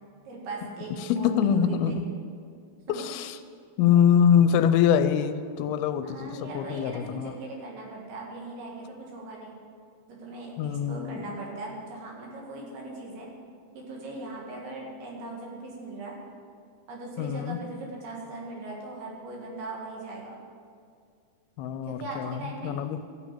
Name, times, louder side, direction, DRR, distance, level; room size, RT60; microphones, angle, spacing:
voice 1, 0.3-2.1 2.9-3.0 6.0-9.5 10.1-13.3 13.7-16.2 16.9-20.4 21.8-22.7, right 2 dB, 90° right, -2 dB, 4.2 m, -39 dB
voice 2, 1.1-2.1 2.9-3.4 3.8-7.3 10.6-11.3 17.2-17.6 21.6-23.0, left 8 dB, 90° left, 10 dB, 2.5 m, -24 dB
13.5 x 6.1 x 8.6 m, 2.2 s
omnidirectional pair, 4.3 m